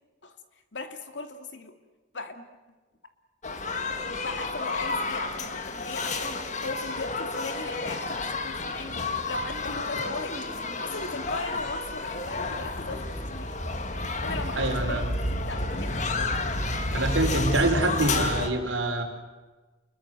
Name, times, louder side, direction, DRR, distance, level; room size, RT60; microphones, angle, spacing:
voice 1, 0.7-1.7 2.1-2.4 4.0-10.4 10.8-13.6 14.2-16.5 16.9-18.4, left 3 dB, 65° left, 7 dB, 2.7 m, -38 dB
sound 1, 3.4-18.5, left 2 dB, 40° left, 1.7 m, -31 dB
voice 2, 14.6-15.1 16.9-19.0, right 2 dB, 80° right, 3 dB, 4.7 m, -26 dB
30.0 x 21.5 x 7.8 m, 1.2 s
head